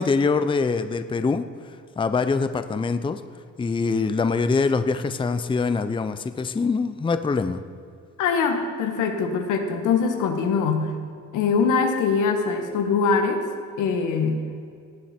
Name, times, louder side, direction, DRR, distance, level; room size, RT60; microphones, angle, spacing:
voice 1, 0.0-1.4 2.0-3.2 3.6-7.6, left 4 dB, 15° left, 11 dB, 0.5 m, -24 dB
voice 2, 8.2-11.0 11.3-13.4 13.8-14.4, left 5 dB, 85° left, 5 dB, 1.4 m, -23 dB
18.0 x 7.3 x 4.4 m, 2.4 s
cardioid pair, 90°, 30 cm